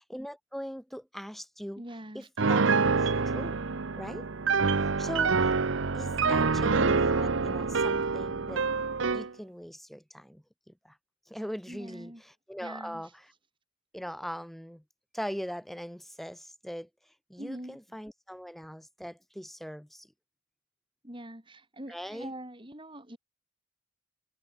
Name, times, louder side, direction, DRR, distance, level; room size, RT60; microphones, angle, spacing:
voice 1, 0.1-1.8 2.1-2.6 2.9-3.6 4.0-4.3 4.8-5.5 5.9-8.7 9.1-11.0 11.3-13.3 13.9-14.8 15.1-20.1 21.9-22.3, equal, ahead, 1.3 m, -41 dB
voice 2, 1.8-2.3 6.2-6.6 11.7-12.2 12.6-13.1 17.4-17.8 21.0-23.2, right 1 dB, 25° right, 3.6 m, -43 dB
Piano, 2.4-9.3, right 4 dB, 65° right, 0.8 m, -26 dB
head